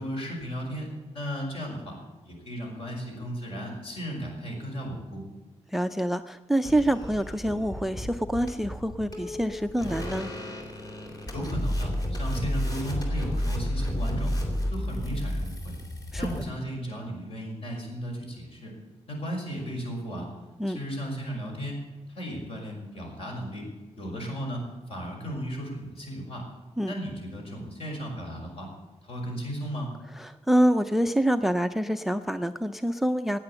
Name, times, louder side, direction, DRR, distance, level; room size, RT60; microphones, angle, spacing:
voice 1, 0.0-2.0 2.2-5.2 11.3-14.4 14.7-15.7 16.2-18.7 19.1-20.3 20.7-23.7 24.0-26.5 26.9-28.7 29.0-29.9, equal, 55° left, 1 dB, 5.8 m, -35 dB
voice 2, 5.7-10.3 16.1-16.2 20.6-20.8 26.8-26.9 30.1-33.4, right 1 dB, ahead, 11 dB, 0.4 m, -26 dB
sound 1, 6.6-16.5, equal, 30° left, 3.3 m, -32 dB
16.0 x 9.7 x 8.7 m, 1.2 s
wide cardioid pair, 160°, 12 cm